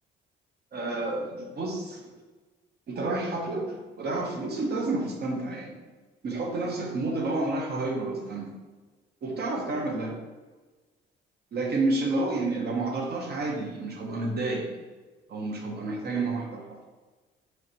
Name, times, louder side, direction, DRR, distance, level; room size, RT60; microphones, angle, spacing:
voice 1, 0.7-2.1 2.9-5.8 6.2-8.5 9.2-10.2 11.5-14.7 15.3-16.8, right 2 dB, 55° right, 1 dB, 0.8 m, -30 dB
3.2 x 2.5 x 4.3 m, 1.3 s
cardioid pair, 90°, 20 cm